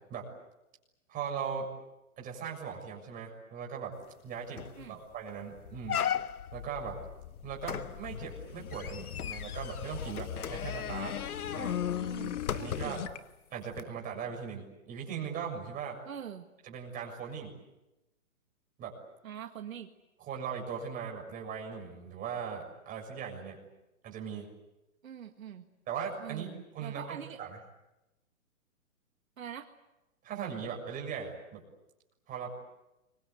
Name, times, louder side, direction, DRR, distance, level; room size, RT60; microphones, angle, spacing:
voice 1, 1.1-1.7 2.2-3.9 4.2-6.0 6.5-7.0 7.4-11.1 11.5-11.8 12.5-13.0 13.5-16.0 16.6-17.5 18.8-18.9 20.2-23.6 24.0-24.5 25.9-26.5 26.7-27.0 27.4-27.6 30.2-31.6 32.3-32.6, right 7 dB, 20° right, 0 dB, 7.0 m, -39 dB
sound 1, 4.1-4.2 4.6-4.9 5.3-5.4 5.9-6.6 7.6-13.1 13.7-13.8, left 9 dB, 90° left, 1.1 m, -36 dB
sound 2, 5.1-13.2, left 9 dB, 55° left, 1.8 m, -42 dB
voice 2, 12.0-13.1 16.1-16.5 19.2-19.9 25.0-25.7 26.2-27.4 29.4-29.7, right 9 dB, 70° right, 5 dB, 2.0 m, -44 dB
29.0 x 24.0 x 8.3 m, 0.98 s
hypercardioid pair, 150°, 43 cm